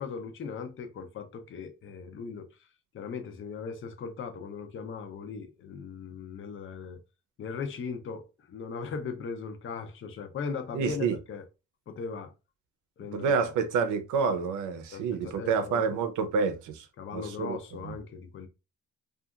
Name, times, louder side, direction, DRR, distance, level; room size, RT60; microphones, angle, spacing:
voice 1, 0.0-2.7 2.9-7.0 7.4-11.4 11.9-12.3 13.0-13.5 14.9-16.0 17.0-18.5, left 5 dB, 40° left, 0.6 m, -38 dB
voice 2, 10.7-11.2 13.1-16.9 17.1-18.0, right 5 dB, 80° right, 0.6 m, -28 dB
2.7 x 2.4 x 2.4 m
cardioid pair, 90°, 30 cm